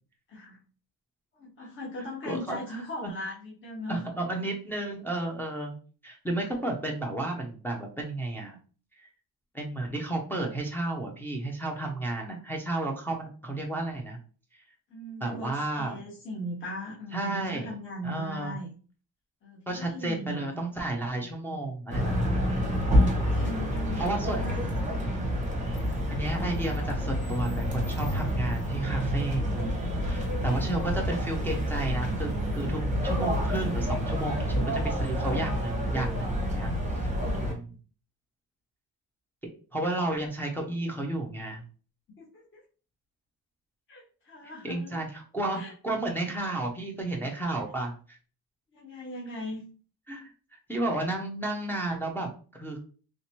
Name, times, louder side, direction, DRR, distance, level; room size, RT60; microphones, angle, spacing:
voice 1, 0.3-0.6 1.3-4.0 14.9-18.7 19.4-20.6 23.0-24.6 24.9-25.4 42.2-42.6 43.9-45.0 45.5-45.7 48.7-49.6, equal, 30° left, -5 dB, 1.0 m, -39 dB
voice 2, 2.3-3.1 3.9-5.8 6.0-8.6 9.0-9.1 9.5-14.2 15.2-16.0 17.1-17.8 18.0-18.6 19.7-22.6 24.0-24.4 26.1-29.8 30.1-37.1 37.4-37.7 39.7-41.6 44.6-48.2 50.1-52.8, right 2 dB, 5° left, -1 dB, 0.5 m, -32 dB
sound 1, 21.9-37.5, equal, 20° right, 0.9 m, -28 dB
3.3 x 2.8 x 2.9 m, 0.39 s
cardioid pair, 165°, 41 cm